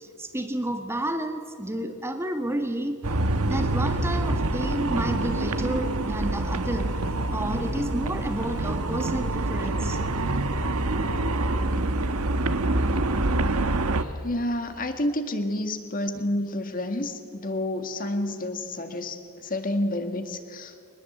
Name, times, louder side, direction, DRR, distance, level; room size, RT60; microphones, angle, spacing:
voice 1, 0.0-3.0 3.4-6.9 7.3-10.0, right 1 dB, 10° right, 6 dB, 1.6 m, -30 dB
sound 1, 3.0-14.0, right 2 dB, 80° right, 1.2 m, -26 dB
voice 2, 14.0-20.8, left 1 dB, 40° left, 7 dB, 1.9 m, -29 dB
23.5 x 20.5 x 8.0 m, 2.2 s
head